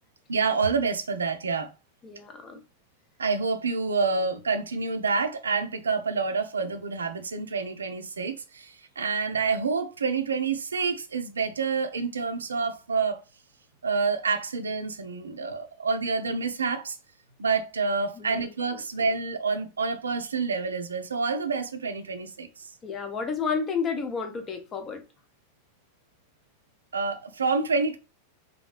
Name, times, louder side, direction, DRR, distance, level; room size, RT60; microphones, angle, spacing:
voice 1, 0.3-1.7 3.2-13.2 13.8-17.0 17.4-22.7 26.9-28.0, right 4 dB, 70° right, 0.4 m, -28 dB
voice 2, 2.0-2.6 18.2-18.8 22.8-25.0, left 5 dB, 25° left, 0.7 m, -31 dB
3.0 x 2.7 x 2.4 m
figure-of-eight pair, 90°, 0 cm